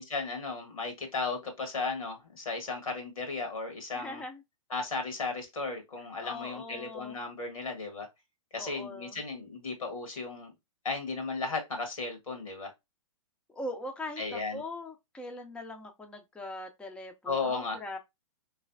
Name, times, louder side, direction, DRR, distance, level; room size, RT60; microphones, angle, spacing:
voice 1, 0.0-4.2 4.7-8.1 8.5-10.5 10.8-12.7 14.2-14.6 17.2-17.8, left 3 dB, 85° left, 1.6 m, -35 dB
voice 2, 3.9-4.4 6.2-7.2 8.6-9.2 13.5-18.0, left 1 dB, 5° left, 0.5 m, -41 dB
3.7 x 3.2 x 2.5 m
hypercardioid pair, 115°, 17 cm